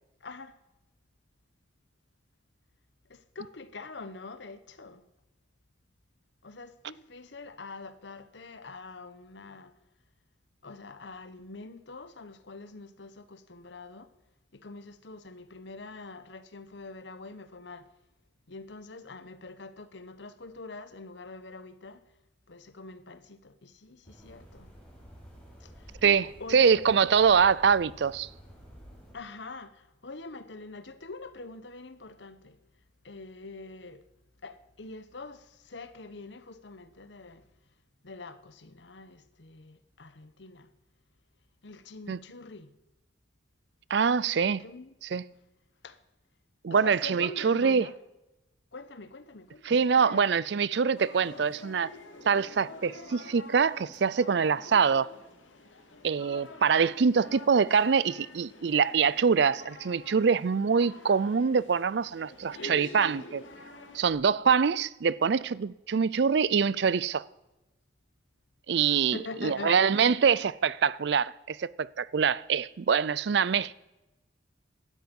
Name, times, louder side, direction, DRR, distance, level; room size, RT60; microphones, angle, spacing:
voice 1, 0.2-0.6 3.1-5.0 6.4-9.7 10.6-14.1 14.5-17.9 18.5-22.0 22.5-24.7 25.6-26.0 26.4-26.8 29.1-32.6 33.0-34.0 34.4-37.4 38.0-40.7 41.6-42.7 44.6-44.9 45.8-46.0 46.7-47.9 48.7-50.3 69.1-70.2, left 3 dB, 70° left, 1.0 m, -44 dB
sound 1, 24.0-29.1, equal, 10° left, 6.1 m, -51 dB
voice 2, 26.0-28.3 42.1-42.2 43.9-44.6 45.0-45.3 46.6-47.9 49.6-51.9 52.3-55.1 56.0-63.4 63.9-67.2 68.7-73.7, right 6 dB, 60° right, 0.4 m, -24 dB
sound 2, 51.0-64.1, left 2 dB, 90° left, 2.1 m, -47 dB
17.0 x 12.5 x 5.3 m
head